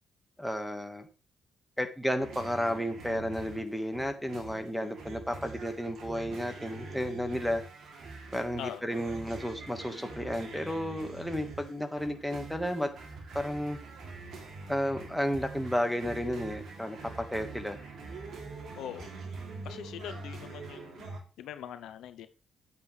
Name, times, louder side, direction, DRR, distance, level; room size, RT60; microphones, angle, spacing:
voice 1, 0.4-1.1 1.8-7.6 8.3-12.9 13.3-13.8 14.7-17.8, equal, ahead, 1.6 m, -32 dB
sound 1, 2.2-21.2, right 3 dB, 65° right, 3.0 m, -44 dB
voice 2, 18.8-19.1 19.4-22.3, left 10 dB, 85° left, 0.8 m, -43 dB
9.9 x 8.4 x 3.4 m
cardioid pair, 90°, 0 cm